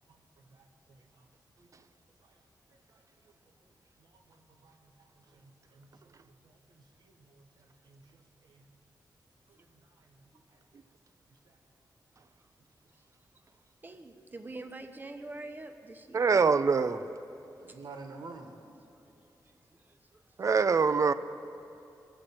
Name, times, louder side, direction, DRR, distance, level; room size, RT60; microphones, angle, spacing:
voice 1, 0.4-1.2 1.6-1.8 2.2-2.3 2.7-3.3 4.0-4.9 5.3-8.0 8.4-8.7 9.5-10.2 11.4-11.6 17.6-18.5, right 3 dB, 70° right, 4 dB, 1.3 m, -52 dB
voice 2, 13.8-16.2 17.7-17.8 19.5-20.2, right 2 dB, 25° right, 6 dB, 0.8 m, -46 dB
voice 3, 16.1-17.0 20.4-21.1, right 5 dB, 45° right, 12 dB, 0.4 m, -24 dB
19.0 x 7.5 x 4.4 m, 2.7 s
cardioid pair, 85°, 7 cm